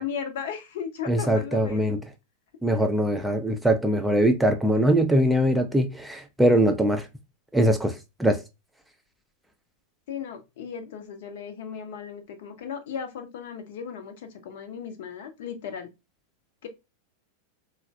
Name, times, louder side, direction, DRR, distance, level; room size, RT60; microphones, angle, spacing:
voice 1, 0.0-2.0 10.1-15.9 16.6-16.7, left 7 dB, 55° left, 0.6 m, -36 dB
voice 2, 1.1-2.0 2.6-7.1 7.5-8.4, right 1 dB, 5° right, 0.4 m, -22 dB
3.1 x 2.0 x 2.3 m
figure-of-eight pair, 90°, 0 cm